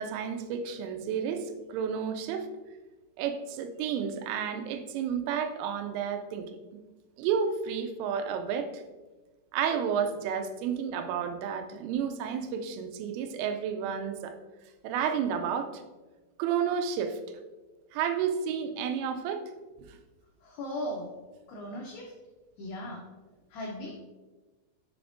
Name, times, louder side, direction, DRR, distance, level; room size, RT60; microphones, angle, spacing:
voice 1, 0.0-2.5 3.2-6.8 7.2-8.8 9.5-14.4 14.8-15.8 16.4-17.2 17.9-19.4 19.9-20.0, right 7 dB, 85° right, 7 dB, 3.1 m, -31 dB
voice 2, 20.4-21.1 21.5-22.1 22.6-23.0 23.5-23.9, left 1 dB, 90° left, -1 dB, 2.3 m, -37 dB
6.9 x 6.9 x 2.5 m, 1.2 s
omnidirectional pair, 5.7 m